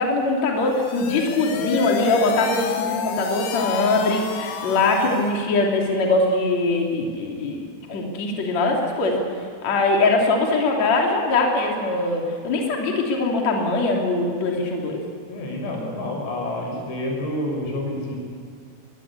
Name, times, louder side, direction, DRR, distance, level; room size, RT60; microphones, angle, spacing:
voice 1, 0.0-9.1 9.6-15.0, left 3 dB, 45° left, 0 dB, 3.8 m, -22 dB
sound 1, 0.6-5.4, left 8 dB, 65° left, 2.4 m, -30 dB
voice 2, 15.3-18.2, left 1 dB, 85° left, 1 dB, 7.8 m, -28 dB
23.5 x 22.0 x 8.5 m, 2.1 s
omnidirectional pair, 4.8 m